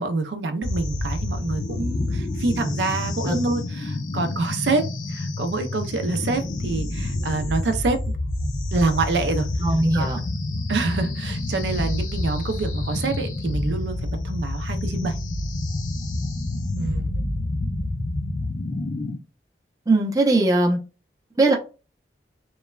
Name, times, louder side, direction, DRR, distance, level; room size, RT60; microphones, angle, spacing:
voice 1, 0.0-8.0 8.7-9.5 9.9-10.1 10.7-15.2 16.8-17.1, right 3 dB, 85° right, 7 dB, 0.4 m, -26 dB
sound 1, 0.6-19.2, left 2 dB, 45° left, 0.5 m, -28 dB
voice 2, 9.6-10.2 19.9-20.8 21.4-21.5, right 2 dB, 20° right, 0 dB, 0.5 m, -19 dB
3.0 x 2.1 x 2.3 m, 0.32 s
head